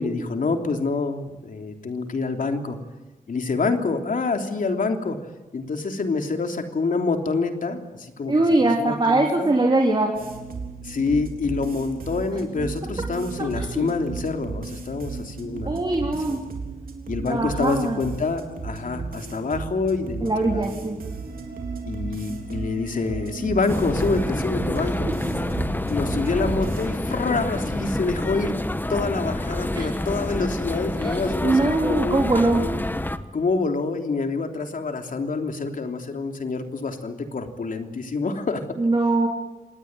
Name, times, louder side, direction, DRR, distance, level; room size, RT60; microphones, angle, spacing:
voice 1, 0.0-2.8 3.3-5.2 5.5-8.3 8.8-9.5 10.8-16.4 17.1-20.9 21.9-25.1 25.9-28.6 28.9-31.6 31.9-32.2 33.3-38.6, left 3 dB, 70° left, 5 dB, 3.2 m, -27 dB
voice 2, 8.3-10.1 13.6-13.9 15.7-16.4 17.2-18.0 20.2-21.0 26.4-26.5 29.7-29.9 31.0-32.6 38.8-39.3, right 2 dB, 30° right, 1 dB, 3.7 m, -22 dB
sound 1, 10.1-26.9, right 4 dB, 85° right, 3.7 m, -35 dB
sound 2, 23.7-33.2, left 1 dB, 15° left, 1.3 m, -28 dB
27.0 x 19.5 x 9.0 m, 1.1 s
wide cardioid pair, 105°, 15 cm